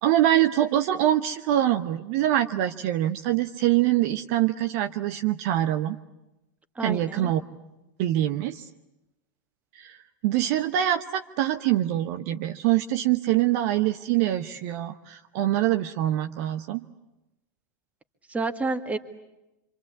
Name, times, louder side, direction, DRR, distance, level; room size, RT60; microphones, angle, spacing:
voice 1, 0.0-6.0 6.8-7.4 8.0-8.7 9.7-16.8, right 13 dB, 50° right, 8 dB, 1.0 m, -24 dB
voice 2, 6.8-7.3 18.3-19.0, right 3 dB, 15° right, 9 dB, 2.0 m, -29 dB
26.5 x 26.0 x 8.5 m, 0.94 s
figure-of-eight pair, 90°, 10 cm